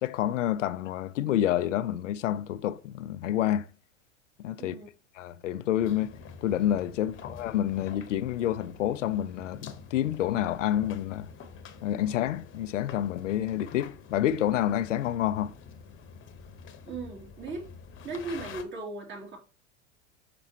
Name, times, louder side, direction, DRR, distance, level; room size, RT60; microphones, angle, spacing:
voice 1, 0.0-3.7 4.4-4.7 5.2-6.1 6.4-11.3 11.8-15.5, left 11 dB, 85° left, 0.6 m, -28 dB
voice 2, 4.6-4.9 16.9-17.7 18.0-19.4, right 3 dB, 30° right, 2.7 m, -37 dB
sound 1, 5.8-18.6, left 6 dB, 35° left, 1.1 m, -47 dB
6.0 x 5.9 x 2.8 m
hypercardioid pair, 105°, 36 cm